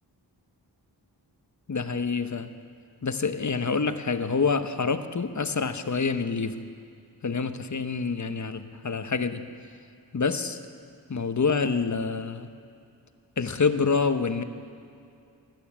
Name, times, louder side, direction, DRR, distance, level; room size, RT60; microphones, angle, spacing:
voice 1, 1.7-2.5 3.0-6.6 7.2-9.5 10.1-10.6 11.1-12.5 13.4-14.4, left 5 dB, 40° left, 10 dB, 0.9 m, -27 dB
16.0 x 11.5 x 7.3 m, 2.5 s
cardioid pair, 50°, 43 cm